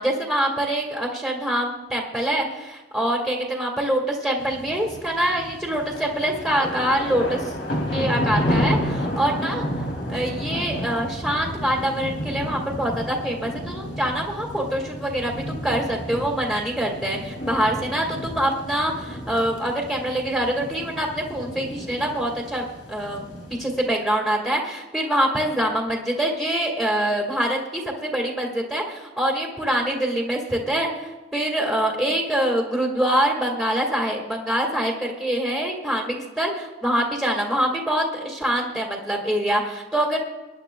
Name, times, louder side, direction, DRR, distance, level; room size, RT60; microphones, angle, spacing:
voice 1, 0.0-7.5 7.9-9.7 10.1-40.2, right 1 dB, ahead, 0 dB, 1.8 m, -25 dB
sound 1, 4.4-23.9, equal, 60° left, 2.4 m, -31 dB
22.5 x 11.0 x 2.3 m, 1.2 s
head